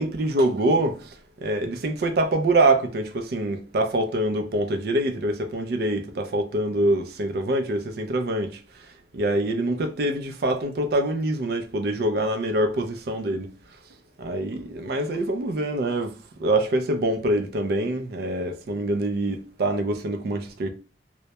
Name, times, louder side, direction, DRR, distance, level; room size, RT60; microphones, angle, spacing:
voice 1, 0.0-8.9 9.1-13.5 14.2-20.7, right 1 dB, 55° right, 0.4 m, -25 dB
2.1 x 2.1 x 2.7 m
head